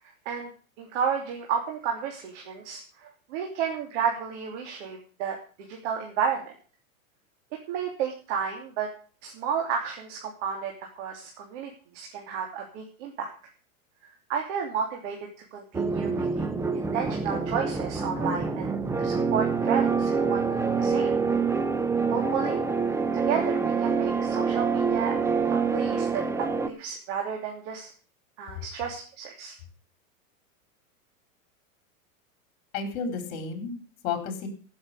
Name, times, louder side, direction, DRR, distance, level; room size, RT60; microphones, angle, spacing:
voice 1, 0.8-5.4 5.7-6.5 7.7-8.9 9.2-13.3 14.3-15.2 15.5-18.7 19.0-21.1 22.1-22.6 22.9-25.2 25.5-26.2 26.6-27.9 28.4-29.6, right 7 dB, 55° right, 1 dB, 3.1 m, -32 dB
sound 1, 15.7-26.7, right 5 dB, 5° right, 0.6 m, -26 dB
voice 2, 32.7-34.5, left 5 dB, 50° left, 7 dB, 4.3 m, -32 dB
16.0 x 7.2 x 6.7 m, 0.40 s
hypercardioid pair, 135°, 42 cm